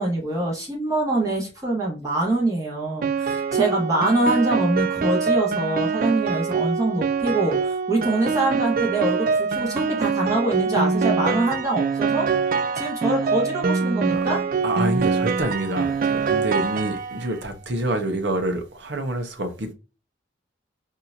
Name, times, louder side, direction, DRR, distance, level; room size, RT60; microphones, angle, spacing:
voice 1, 0.0-12.3 12.7-14.4, right 2 dB, 15° right, 1.5 m, -24 dB
Piano, 3.0-17.4, right 5 dB, 45° right, 0.3 m, -24 dB
voice 2, 14.6-19.7, right 1 dB, 65° right, 0.9 m, -27 dB
4.3 x 2.8 x 2.5 m
head